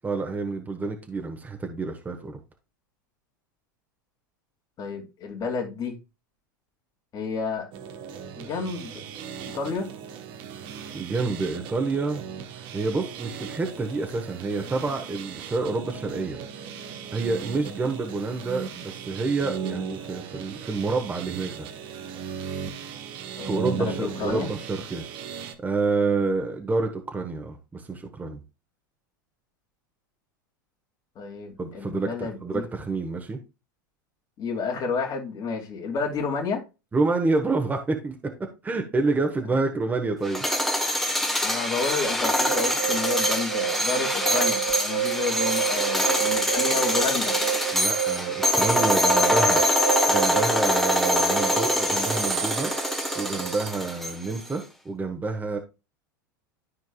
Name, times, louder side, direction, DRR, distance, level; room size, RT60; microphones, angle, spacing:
voice 1, 0.0-2.4 10.9-12.2 12.7-16.4 17.1-21.7 23.4-25.0 25.6-28.4 31.6-33.4 36.9-40.5 47.7-49.6 50.1-52.7 53.1-55.6, right 3 dB, 15° right, 1.4 m, -28 dB
voice 2, 4.8-6.0 7.1-7.7 8.4-9.0 9.5-9.9 23.4-24.5 31.2-32.6 34.4-36.6 39.4-39.6 41.4-47.4, left 4 dB, 35° left, 2.5 m, -30 dB
sound 1, 7.7-25.5, right 7 dB, 50° right, 1.2 m, -37 dB
sound 2, 40.2-54.4, left 1 dB, 5° left, 1.4 m, -24 dB
sound 3, 42.5-53.7, right 12 dB, 65° right, 0.6 m, -30 dB
13.0 x 4.5 x 2.3 m
hypercardioid pair, 100°, 11 cm